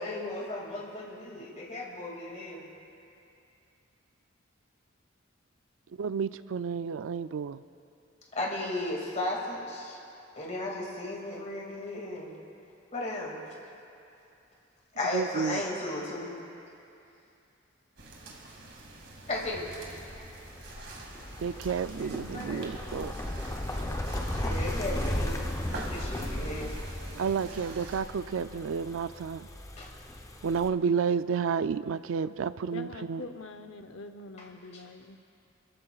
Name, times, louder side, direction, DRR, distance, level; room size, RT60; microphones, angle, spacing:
voice 1, 0.0-2.7 8.3-10.0 10.4-12.3 12.9-13.4 15.0-16.3 19.3-19.7 22.0-22.1 22.3-22.7 23.6-24.0 24.4-25.4 25.7-26.7 29.8-29.9, left 1 dB, 35° left, -2 dB, 2.3 m, -35 dB
voice 2, 6.0-7.6 15.1-15.6 21.4-23.1 27.2-29.5 30.4-33.2, right 6 dB, 80° right, 13 dB, 0.4 m, -31 dB
sound 1, 18.0-28.0, right 2 dB, 65° right, 2.2 m, -45 dB
Car Tires Start and Stop on Gravel Shoulder, 19.4-30.7, left 1 dB, 15° left, 0.7 m, -36 dB
voice 3, 32.7-35.2, left 3 dB, 70° left, 7 dB, 0.7 m, -44 dB
29.5 x 14.5 x 2.4 m, 2.7 s
head